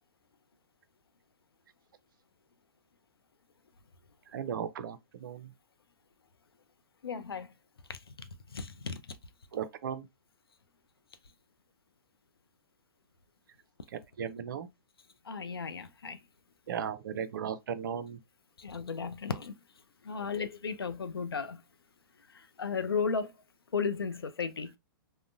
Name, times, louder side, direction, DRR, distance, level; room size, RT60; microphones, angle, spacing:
voice 1, 4.3-5.5 9.5-10.1 13.9-14.7 16.7-18.2 20.2-20.3, right 8 dB, 60° right, 0.5 m, -36 dB
voice 2, 7.0-7.5 7.9-8.3 8.5-9.0 15.3-16.2 18.6-19.5 20.0-21.6 22.3-23.3 23.7-24.7, left 5 dB, 85° left, 0.4 m, -34 dB
3.6 x 2.1 x 2.5 m
figure-of-eight pair, 110°, 12 cm